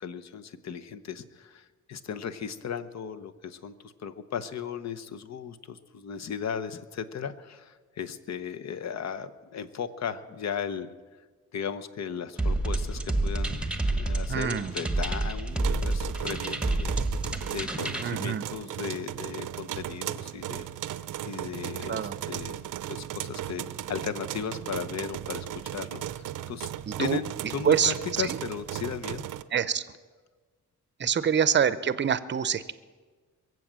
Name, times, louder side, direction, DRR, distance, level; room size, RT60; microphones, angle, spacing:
voice 1, 0.0-10.9 11.5-16.9 17.5-20.7 21.2-22.6 22.9-26.7 27.0-29.3 31.2-31.3, left 7 dB, 60° left, 11 dB, 0.9 m, -36 dB
sound 1, 12.4-18.0, right 2 dB, 5° right, 1.1 m, -29 dB
voice 2, 14.3-14.7 18.0-18.4 21.9-22.2 26.9-27.2 27.6-27.9 28.2-28.4 29.5-29.8 31.0-32.7, right 8 dB, 35° right, 15 dB, 0.6 m, -25 dB
sound 2, 15.5-29.4, right 12 dB, 80° right, 0.6 m, -36 dB
22.5 x 7.8 x 7.5 m, 1.4 s
cardioid pair, 110°, 31 cm